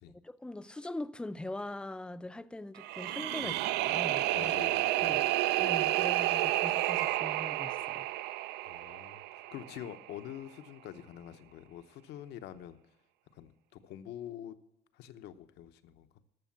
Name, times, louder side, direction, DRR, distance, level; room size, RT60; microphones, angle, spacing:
voice 1, 0.2-4.6 5.0-5.3 5.6-8.1, left 1 dB, 5° left, 0.4 m, -42 dB
sound 1, 2.8-9.9, right 16 dB, 85° right, 0.4 m, -31 dB
voice 2, 4.3-5.2 8.7-12.8 13.3-14.5 14.9-16.1, left 10 dB, 85° left, 0.9 m, -46 dB
13.5 x 6.4 x 7.2 m
cardioid pair, 110°, 17 cm